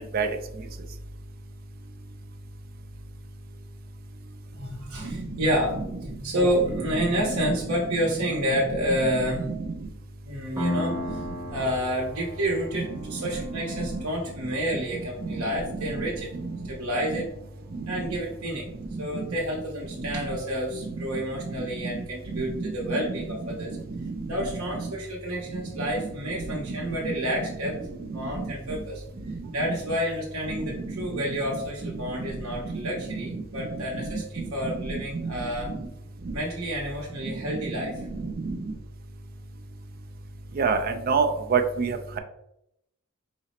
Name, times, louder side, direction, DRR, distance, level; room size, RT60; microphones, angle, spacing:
voice 1, 4.5-9.4 10.2-11.2 11.5-16.3 16.7-17.2 17.9-18.7 19.0-23.8 24.3-27.8 28.1-29.0 29.5-35.7 36.3-38.1, equal, 75° right, -3 dB, 0.8 m, -29 dB
voice 2, 6.7-7.5 8.7-9.7 12.7-13.2 13.8-14.0 15.2-15.4 15.7-16.1 16.4-16.6 17.1-17.2 17.7-17.9 19.1-19.2 20.0-20.3 21.4-21.5 22.3-23.2 23.4-23.5 24.0-24.3 24.5-24.9 25.5-26.1 26.5-27.1 27.4-27.5 28.3-28.5 29.6-29.7 30.5-31.2 31.5-31.9 32.7-33.2 33.6-35.3 35.7-35.8 36.3-36.4 37.2-37.6 38.1-38.6 40.6-42.2, right 4 dB, 45° right, 5 dB, 0.4 m, -30 dB
Piano, 10.6-18.0, left 2 dB, 15° right, 1.0 m, -37 dB
4.9 x 2.0 x 4.1 m, 0.81 s
head